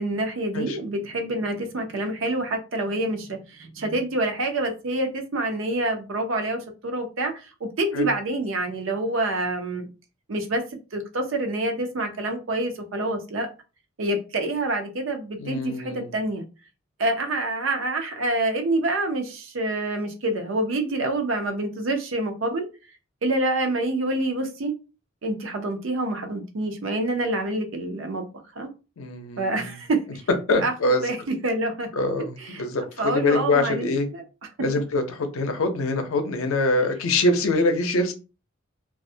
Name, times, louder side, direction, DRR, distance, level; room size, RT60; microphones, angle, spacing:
voice 1, 0.0-9.9 10.3-10.6 10.9-13.5 14.0-16.4 17.0-22.7 23.2-24.7 25.2-28.3 28.6-28.7 29.4-30.2 30.6-30.7 31.0-31.9 32.2-32.6 33.0-33.9 34.1-34.2, right 2 dB, 70° right, 4 dB, 0.5 m, -27 dB
voice 2, 15.4-16.1 29.0-29.7 30.5-31.1 32.0-34.1 34.6-38.1, left 2 dB, 90° left, 7 dB, 0.5 m, -24 dB
2.3 x 2.0 x 2.6 m, 0.32 s
head